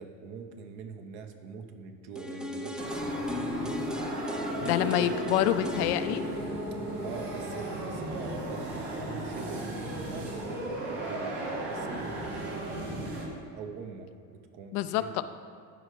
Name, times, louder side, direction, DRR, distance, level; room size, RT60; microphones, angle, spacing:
voice 1, 0.0-3.3 4.3-5.1 7.0-9.8 10.1-13.0 13.5-15.2, right 5 dB, 60° right, 6 dB, 0.9 m, -44 dB
sound 1, 2.1-8.1 8.4-8.5, left 2 dB, ahead, 0.3 m, -36 dB
sound 2, 2.8-13.3, right 1 dB, 85° right, 1.6 m, -36 dB
voice 2, 4.6-6.2 14.7-15.2, left 12 dB, 80° left, 12 dB, 0.5 m, -27 dB
12.5 x 4.9 x 3.3 m, 2.4 s
hypercardioid pair, 80°, 44 cm